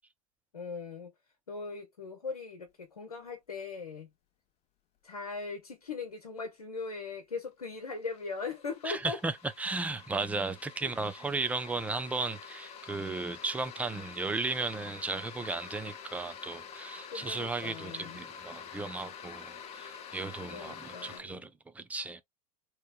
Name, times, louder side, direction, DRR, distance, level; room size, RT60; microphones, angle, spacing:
voice 1, 0.5-1.1 1.5-4.1 5.0-9.2 17.1-18.2 20.4-21.4, left 4 dB, 80° left, 0.9 m, -40 dB
sound 1, 7.1-7.2 7.5-21.2, left 7 dB, 35° left, 0.8 m, -47 dB
voice 2, 8.8-22.2, right 3 dB, 10° right, 0.5 m, -35 dB
3.0 x 3.0 x 2.5 m
figure-of-eight pair, 85°, 19 cm